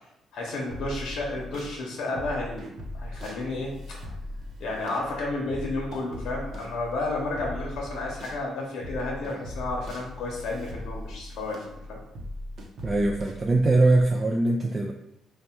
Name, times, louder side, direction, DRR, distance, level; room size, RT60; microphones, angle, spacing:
voice 1, 0.3-4.0 4.6-12.0, left 2 dB, 75° left, -2 dB, 0.8 m, -32 dB
sound 1, 0.7-1.7 2.2-8.4 8.8-14.0, left 1 dB, 60° right, 0.7 m, -39 dB
voice 2, 12.8-14.9, right 2 dB, 30° right, 1 dB, 0.3 m, -22 dB
3.3 x 2.2 x 4.3 m, 0.82 s
cardioid pair, 90°, 0 cm